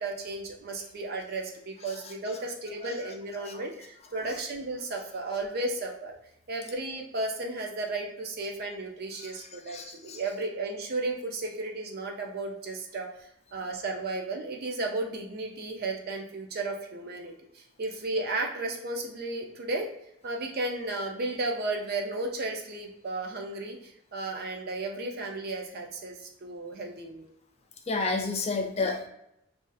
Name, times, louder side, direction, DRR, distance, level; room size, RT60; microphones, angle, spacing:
voice 1, 0.0-6.2 6.5-19.9 20.2-27.2, right 2 dB, 45° right, 2 dB, 0.4 m, -34 dB
voice 2, 9.7-10.2 27.9-29.1, left 3 dB, 30° left, 3 dB, 0.4 m, -30 dB
2.4 x 2.4 x 3.8 m, 0.79 s
head